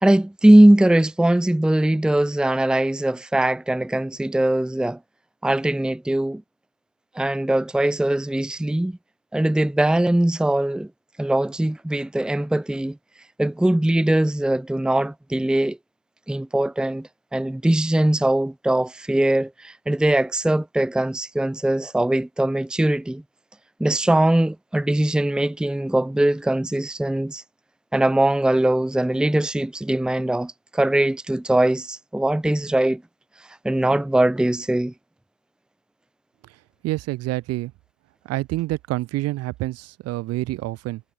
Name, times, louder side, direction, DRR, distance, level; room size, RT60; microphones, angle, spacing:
voice 1, 0.0-5.0 5.4-6.4 7.1-9.0 9.3-10.9 11.2-13.0 13.4-15.8 16.3-23.2 23.8-27.4 27.9-33.0 33.6-34.9, right 1 dB, ahead, 1.7 m, -21 dB
voice 2, 36.8-37.7 38.3-41.0, right 17 dB, 35° right, 2.3 m, -27 dB
supercardioid pair, 150°, 41 cm